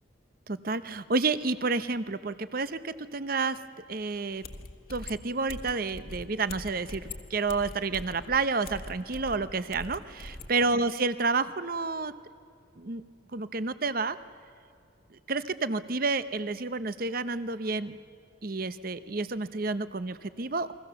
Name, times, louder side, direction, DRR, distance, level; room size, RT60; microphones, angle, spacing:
voice 1, 0.5-3.6 3.9-4.4 4.9-12.1 12.8-13.0 13.3-14.2 15.1-18.0 18.4-20.7, right 3 dB, 45° right, 13 dB, 0.8 m, -30 dB
sound 1, 4.1-4.2 4.4-10.5, left 2 dB, 50° left, 1.4 m, -43 dB
29.5 x 22.5 x 6.9 m, 2.4 s
head